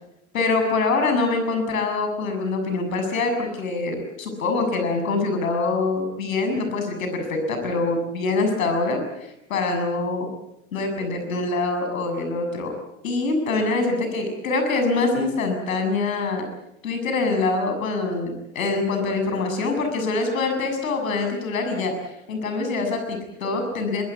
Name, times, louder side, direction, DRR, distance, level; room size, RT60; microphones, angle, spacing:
voice 1, 0.3-10.3 10.7-12.7 13.0-16.4 16.8-21.9 22.3-24.0, left 3 dB, 75° left, 5 dB, 7.1 m, -24 dB
23.5 x 23.0 x 8.4 m, 0.86 s
hypercardioid pair, 85°, 41 cm